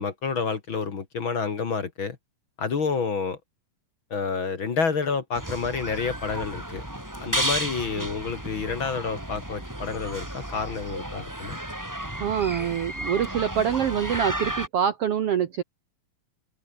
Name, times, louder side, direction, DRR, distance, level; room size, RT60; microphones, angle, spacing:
voice 1, 0.0-2.2 2.6-3.4 4.1-6.8 7.2-11.6, left 5 dB, 40° left, 2.3 m, -29 dB
sound 1, 5.3-14.7, right 1 dB, 5° right, 3.7 m, -33 dB
voice 2, 12.2-15.6, right 9 dB, 60° right, 1.7 m, -25 dB
open air
omnidirectional pair, 3.9 m